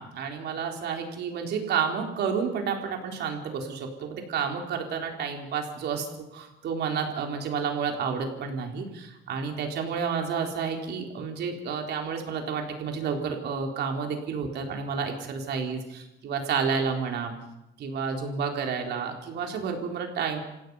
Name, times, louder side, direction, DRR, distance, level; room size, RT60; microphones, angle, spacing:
voice 1, 0.0-6.1 6.3-17.3 17.8-20.4, right 6 dB, 55° right, 2 dB, 3.9 m, -30 dB
29.0 x 16.0 x 5.6 m, 0.91 s
cardioid pair, 140°, 20 cm